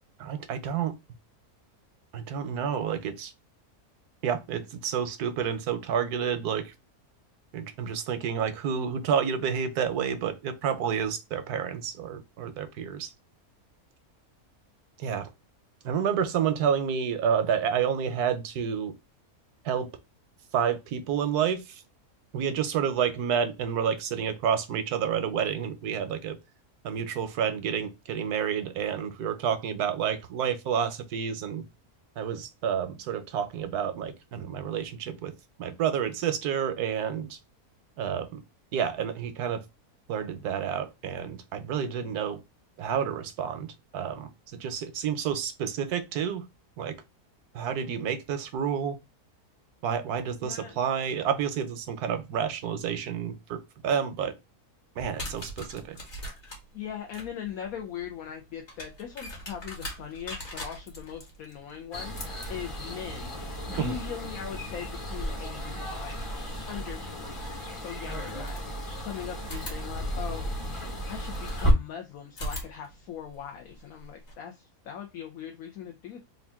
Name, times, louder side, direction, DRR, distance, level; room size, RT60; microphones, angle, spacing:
voice 1, 0.2-0.9 2.1-3.3 4.2-6.7 7.5-13.1 15.0-15.3 15.8-18.9 19.6-19.9 20.5-21.8 22.3-26.4 26.8-31.6 32.2-35.3 35.6-37.4 38.0-38.4 38.7-39.6 40.1-42.4 42.8-44.3 44.6-46.4 46.8-47.0 47.5-49.0 49.8-53.6 53.8-54.3 55.0-56.0 63.8-64.0, right 8 dB, 80° right, 1.3 m, -29 dB
voice 2, 50.4-50.8 56.7-62.1 62.5-63.4 63.7-66.2 66.7-70.5 71.1-76.2, left 9 dB, 70° left, 1.2 m, -40 dB
sound 1, 55.0-65.8 67.2-67.3 68.0-69.0 69.4-71.7 72.3-74.3, equal, 50° left, 1.8 m, -43 dB
sound 2, 61.9-71.7, equal, 25° left, 0.9 m, -33 dB
3.7 x 2.5 x 3.4 m
omnidirectional pair, 1.6 m